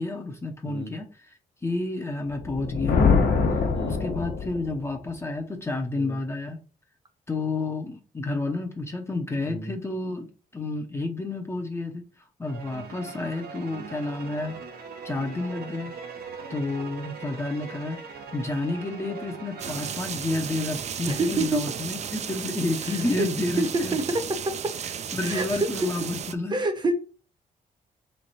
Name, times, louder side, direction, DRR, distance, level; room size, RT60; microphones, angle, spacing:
voice 1, 0.0-1.3 1.6-3.2 3.5-6.6 7.3-12.0 12.4-14.6 15.0-16.0 16.5-23.9 25.1-26.6, left 2 dB, 15° left, 3 dB, 0.6 m, -30 dB
voice 2, 0.6-0.9 3.7-4.0 6.0-6.2 9.5-9.7 21.1-21.6 23.2-23.3 23.6-24.2 25.2-25.9 26.5-26.9, right 2 dB, 30° right, 7 dB, 0.8 m, -27 dB
Thunder, 2.4-4.8, left 5 dB, 75° left, 1.0 m, -23 dB
sound 1, 12.5-21.0, right 5 dB, 80° right, 0.8 m, -41 dB
sound 2, 19.6-26.3, right 8 dB, 45° right, 0.4 m, -34 dB
3.4 x 3.2 x 4.1 m, 0.37 s
cardioid pair, 125°, 16 cm